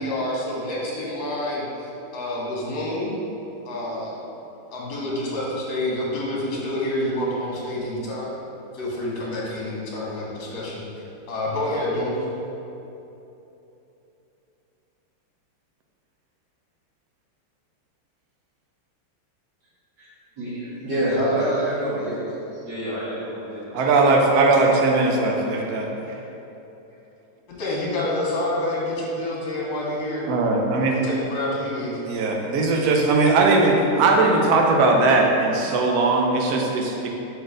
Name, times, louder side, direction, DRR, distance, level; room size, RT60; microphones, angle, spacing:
voice 1, 0.0-3.1 3.6-4.3 4.7-8.3 8.7-10.8 11.3-12.2 27.5-30.2 30.9-32.0, left 1 dB, 60° left, -5 dB, 1.9 m, -28 dB
voice 2, 20.8-23.8 25.5-25.6, right 1 dB, 55° right, -11 dB, 2.1 m, -26 dB
voice 3, 23.7-25.9 30.3-31.1 32.1-37.1, right 3 dB, 70° right, 1 dB, 0.9 m, -19 dB
5.3 x 3.9 x 5.0 m, 3.0 s
omnidirectional pair, 2.4 m